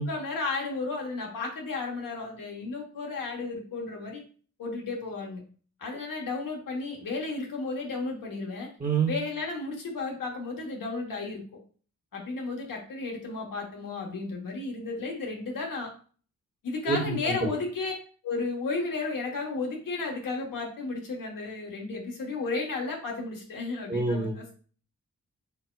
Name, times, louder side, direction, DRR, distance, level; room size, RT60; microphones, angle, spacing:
voice 1, 0.1-4.2 4.6-5.4 5.8-8.7 9.1-11.4 12.1-15.9 16.6-17.9 18.2-24.5, left 3 dB, 75° left, 0 dB, 1.3 m, -33 dB
voice 2, 8.8-9.1 16.9-17.3 23.9-24.5, right 4 dB, 25° right, 1 dB, 1.0 m, -27 dB
4.5 x 3.6 x 2.3 m, 0.42 s
supercardioid pair, 45°, 34 cm